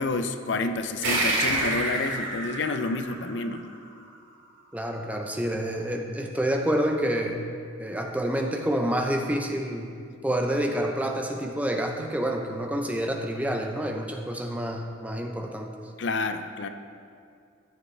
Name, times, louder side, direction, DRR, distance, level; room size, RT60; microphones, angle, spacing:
voice 1, 0.0-3.6 16.0-16.7, left 3 dB, 65° left, 8 dB, 0.5 m, -29 dB
sound 1, 1.0-4.0, right 2 dB, 80° right, 2.4 m, -28 dB
voice 2, 4.7-7.5 7.8-9.9 10.2-15.7, equal, 5° right, 2 dB, 0.6 m, -28 dB
14.0 x 7.8 x 3.3 m, 2.3 s
head